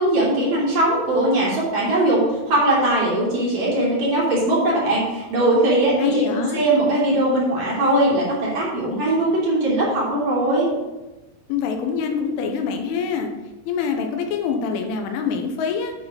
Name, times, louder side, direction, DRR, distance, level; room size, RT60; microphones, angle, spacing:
voice 1, 0.0-10.7, right 1 dB, 40° right, -7 dB, 3.9 m, -20 dB
voice 2, 6.0-6.6 11.5-13.3 13.7-15.9, left 6 dB, 80° left, 4 dB, 3.2 m, -25 dB
11.0 x 4.8 x 5.0 m, 1.1 s
omnidirectional pair, 5.9 m